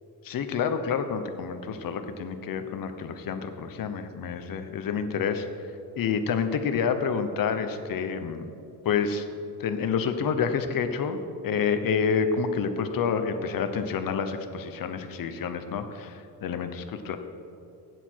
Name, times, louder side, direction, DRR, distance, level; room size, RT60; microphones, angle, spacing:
voice 1, 0.2-5.5 6.0-8.5 8.8-9.3 9.6-17.2, left 6 dB, 55° left, 8 dB, 1.1 m, -28 dB
17.0 x 9.9 x 4.7 m, 2.7 s
cardioid pair, 150°, 39 cm